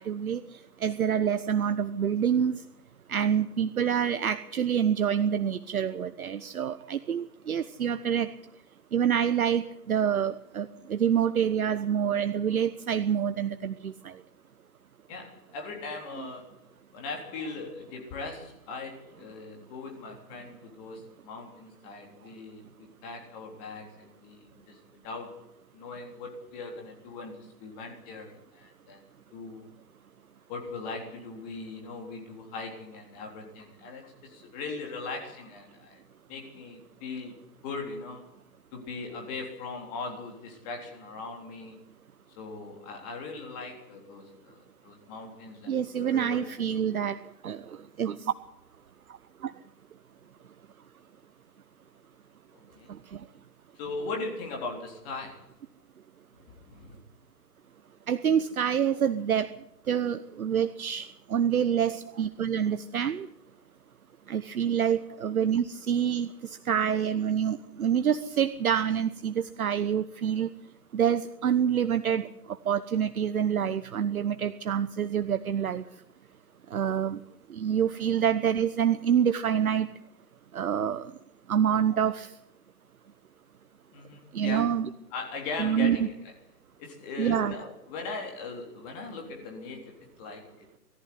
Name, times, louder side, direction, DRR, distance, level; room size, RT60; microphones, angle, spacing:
voice 1, 0.0-2.6 3.1-8.3 8.9-14.2 45.7-47.2 47.4-48.3 49.4-49.5 52.9-53.2 58.1-59.5 59.9-63.3 64.3-70.5 70.9-75.8 76.7-77.2 77.5-79.9 80.5-81.1 81.5-82.3 84.3-84.9 85.6-86.0 87.2-87.5, right 8 dB, 60° right, 11 dB, 1.1 m, -27 dB
voice 2, 15.1-16.5 16.9-24.8 25.0-25.4 25.7-29.0 29.3-29.6 30.5-36.0 36.3-37.3 37.6-38.3 38.7-41.8 42.4-46.5 52.5-52.9 53.8-55.5 56.5-57.0 59.0-59.2 76.9-77.1 83.9-84.7 85.1-86.1 86.8-90.7, left 3 dB, 25° left, 2 dB, 3.6 m, -39 dB
21.0 x 14.5 x 9.7 m, 0.80 s
hypercardioid pair, 150°, 49 cm